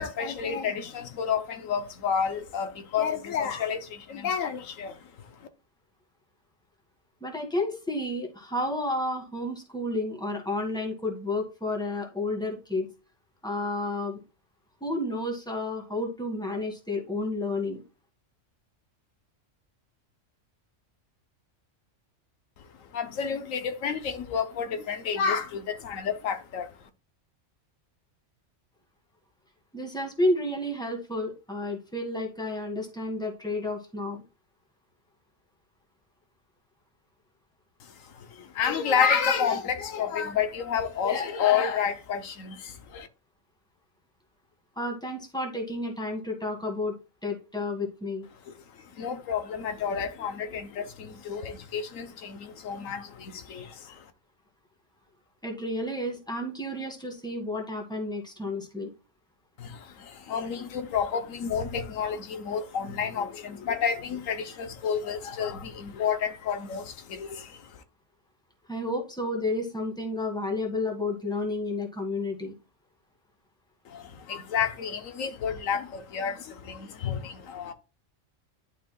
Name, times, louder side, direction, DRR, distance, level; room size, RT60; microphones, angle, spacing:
voice 1, 0.0-5.5 22.8-26.7 37.8-43.1 48.5-54.0 59.6-67.8 73.9-77.7, left 7 dB, 90° left, 1.2 m, -30 dB
voice 2, 7.2-12.9 13.4-14.2 14.8-17.8 29.7-34.2 44.8-46.9 47.2-48.3 55.4-58.9 68.7-72.5, left 2 dB, 5° left, 1.6 m, -31 dB
11.0 x 4.7 x 2.3 m
omnidirectional pair, 1.3 m